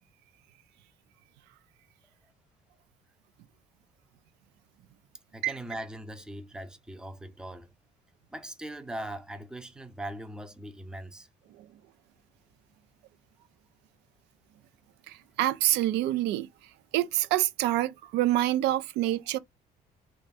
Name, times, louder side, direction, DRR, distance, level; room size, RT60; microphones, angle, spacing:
voice 1, 5.3-7.7 8.3-11.3, right 1 dB, 5° right, 0.6 m, -40 dB
voice 2, 15.1-16.5 16.9-19.4, right 14 dB, 85° right, 0.4 m, -26 dB
3.1 x 2.4 x 4.1 m
cardioid pair, 110°, 17 cm